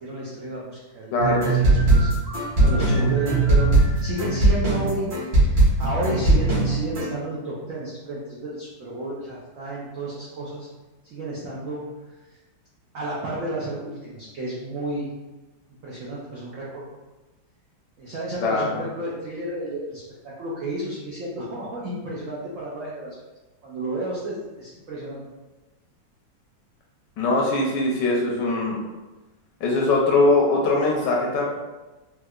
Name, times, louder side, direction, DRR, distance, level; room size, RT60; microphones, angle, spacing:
voice 1, 0.0-2.1 2.6-5.1 5.4-10.7 11.0-11.9 12.3-12.4 12.9-15.1 15.8-16.8 18.0-23.2 23.6-25.2, right 2 dB, 75° right, -6 dB, 0.7 m, -32 dB
voice 2, 1.1-1.4 18.4-18.8 27.2-28.8 29.6-31.5, left 2 dB, 75° left, -2 dB, 1.1 m, -21 dB
sound 1, 1.2-7.1, right 2 dB, 45° right, 1.3 m, -19 dB
4.4 x 2.3 x 2.3 m, 1.1 s
omnidirectional pair, 2.1 m